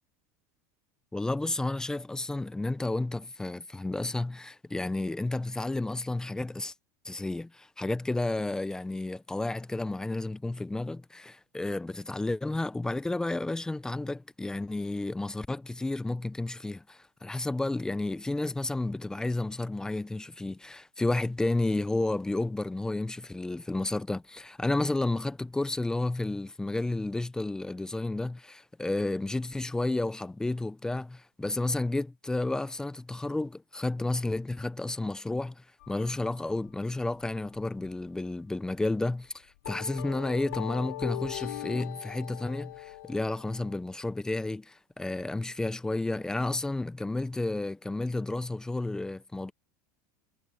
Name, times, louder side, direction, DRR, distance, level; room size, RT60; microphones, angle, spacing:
voice 1, 1.1-6.7 7.0-49.5, left 2 dB, 5° left, 0.6 m, -31 dB
sound 1, 35.8-36.7 37.0-37.3 37.6-37.9 38.2-38.3 39.0-39.1 39.6-43.8, left 18 dB, 85° left, 3.9 m, -40 dB
supercardioid pair, 130°, 9 cm